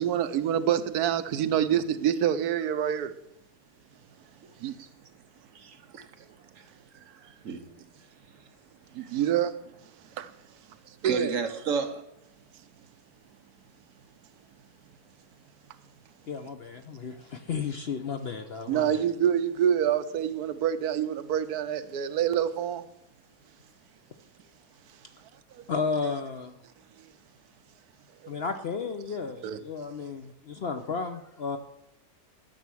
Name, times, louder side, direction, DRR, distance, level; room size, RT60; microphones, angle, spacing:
voice 1, 0.0-3.1 4.6-4.8 6.0-6.1 8.9-9.5 10.2-10.3 10.9-11.3 18.7-22.9 25.5-25.6 29.4-29.6, right 9 dB, 75° right, 1.2 m, -26 dB
voice 2, 5.5-6.0 6.6-6.7 6.9-7.6 9.0-9.1 11.0-12.0, right 5 dB, 55° right, 1.2 m, -32 dB
voice 3, 16.3-19.0 25.7-26.5 28.3-31.6, left 5 dB, 55° left, 0.7 m, -33 dB
12.0 x 7.0 x 6.2 m
omnidirectional pair, 1.7 m